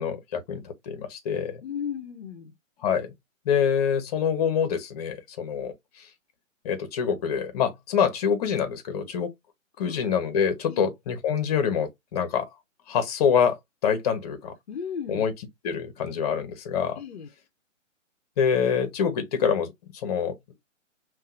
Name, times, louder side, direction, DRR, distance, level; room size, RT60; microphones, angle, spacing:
voice 1, 0.0-1.6 2.8-3.1 3.4-6.0 6.6-9.3 9.8-12.5 12.9-14.5 15.1-15.3 15.6-17.0 18.4-20.3, left 7 dB, 30° left, 1.0 m, -26 dB
voice 2, 1.6-2.5 9.8-10.1 10.7-10.9 14.7-15.3 17.0-17.3, left 7 dB, 55° left, 0.8 m, -35 dB
5.6 x 2.6 x 2.5 m
figure-of-eight pair, 140°, 39 cm